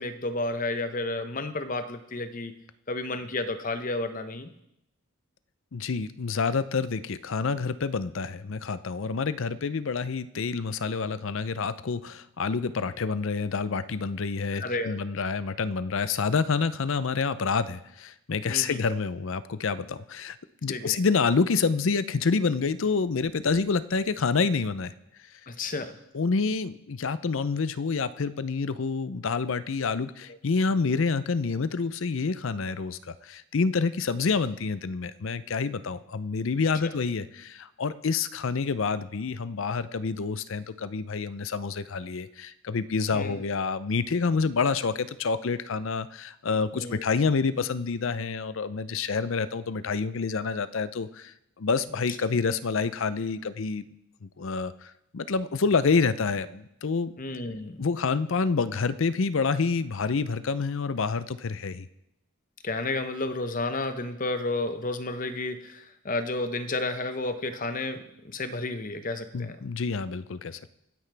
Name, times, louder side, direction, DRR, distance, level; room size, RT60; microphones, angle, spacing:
voice 1, 0.0-2.5 2.9-4.5 14.5-15.0 18.5-18.8 20.7-21.0 25.5-26.0 36.8-36.9 43.1-43.4 46.7-47.0 57.2-57.8 62.6-69.6, left 2 dB, 35° left, 9 dB, 0.8 m, -31 dB
voice 2, 5.7-20.4 20.6-24.9 26.1-53.9 54.2-57.1 57.8-61.9 69.3-70.8, left 4 dB, 65° left, 14 dB, 0.5 m, -28 dB
24.0 x 9.7 x 3.4 m, 0.81 s
head